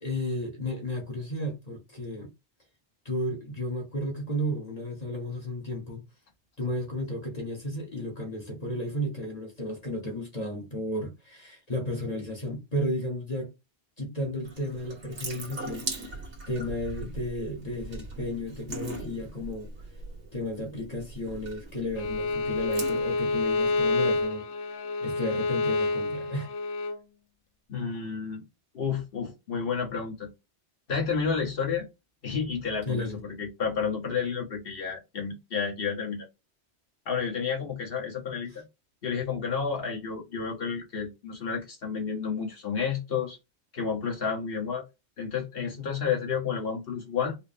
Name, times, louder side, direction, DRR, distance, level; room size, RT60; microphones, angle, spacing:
voice 1, 0.0-2.3 3.0-6.0 6.6-13.5 14.0-16.2 16.5-19.7 20.3-24.5 25.0-26.5 32.9-33.2, left 1 dB, 40° left, 1.1 m, -33 dB
Water tap faucet / Sink (filling or washing) / Drip, 14.4-24.3, right 3 dB, 75° right, 1.5 m, -41 dB
Bowed string instrument, 22.0-27.0, left 3 dB, 80° left, 0.9 m, -28 dB
voice 2, 27.7-28.4 28.7-30.3 30.9-31.9 32.2-36.3 37.1-38.7 39.0-43.4 43.7-44.8 45.2-47.4, left 6 dB, 55° left, 1.4 m, -31 dB
4.6 x 2.1 x 3.3 m
omnidirectional pair, 1.2 m